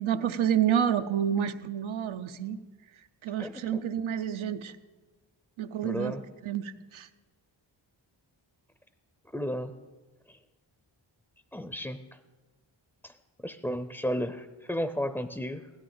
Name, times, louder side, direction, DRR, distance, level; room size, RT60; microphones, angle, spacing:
voice 1, 0.0-2.6 3.2-4.8 5.6-6.1 6.4-7.1, right 9 dB, 85° right, 11 dB, 0.7 m, -29 dB
voice 2, 3.4-3.9 5.8-6.2 9.3-9.7 10.3-10.4 11.5-12.0 13.0-13.1 13.4-15.7, equal, 5° left, 10 dB, 0.4 m, -33 dB
16.5 x 12.0 x 3.9 m, 1.4 s
cardioid pair, 70°, 47 cm